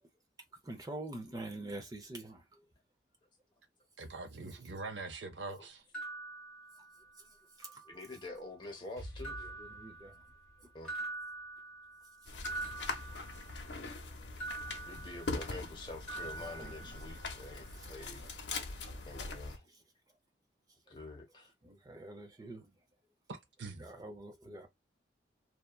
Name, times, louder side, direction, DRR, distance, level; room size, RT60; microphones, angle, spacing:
voice 1, 0.6-2.6 4.3-4.5 7.6-7.8 9.4-10.2 15.5-15.6 16.4-17.0 17.7-17.9 21.6-22.7 23.8-24.7, right 2 dB, 20° right, 0.5 m, -46 dB
voice 2, 4.0-5.8 23.3-23.9, right 3 dB, 80° right, 0.6 m, -43 dB
sound 1, 5.9-7.2 7.6-8.4 9.2-10.5 10.8-13.8 14.4-15.8 16.1-17.4, right 2 dB, 5° left, 1.1 m, -45 dB
voice 3, 7.8-9.5 10.7-11.0 14.9-18.3 18.6-19.6 20.9-21.5, left 2 dB, 25° left, 0.9 m, -47 dB
Explosion, 9.0-12.7, equal, 60° right, 1.5 m, -52 dB
sound 2, 12.3-19.6, left 3 dB, 80° left, 0.7 m, -42 dB
2.7 x 2.3 x 2.3 m
head